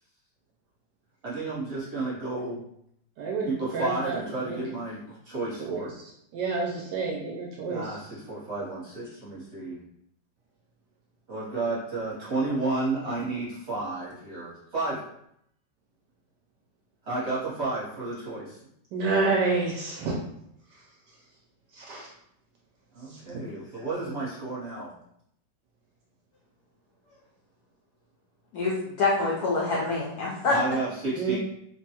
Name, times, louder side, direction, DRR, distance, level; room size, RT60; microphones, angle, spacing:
voice 1, 1.2-2.6 3.5-6.0 7.7-9.8 11.3-15.0 17.0-18.6 22.9-24.9 30.5-31.4, right 2 dB, 40° right, -8 dB, 1.1 m, -32 dB
voice 2, 3.2-4.2 4.4-4.6 5.6-5.8 6.3-7.9 18.9-20.2 21.7-22.1 31.2-31.4, right 4 dB, 75° right, -1 dB, 1.0 m, -28 dB
voice 3, 28.5-30.6, left 3 dB, 75° left, -4 dB, 0.9 m, -26 dB
3.3 x 2.2 x 2.8 m, 0.74 s
omnidirectional pair, 2.1 m